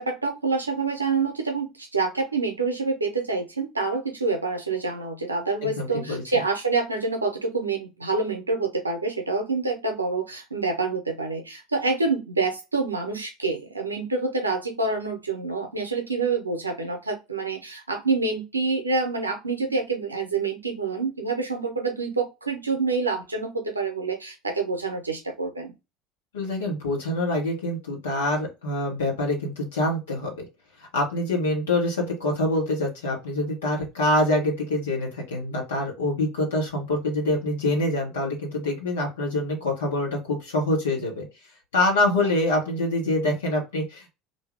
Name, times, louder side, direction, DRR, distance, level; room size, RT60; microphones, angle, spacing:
voice 1, 0.0-25.7, right 3 dB, 90° right, 3 dB, 0.8 m, -27 dB
voice 2, 5.6-6.4 26.3-30.3 30.9-41.2 41.7-44.1, left 1 dB, 75° left, 0 dB, 1.4 m, -25 dB
2.7 x 2.7 x 3.2 m, 0.25 s
figure-of-eight pair, 70°, 0 cm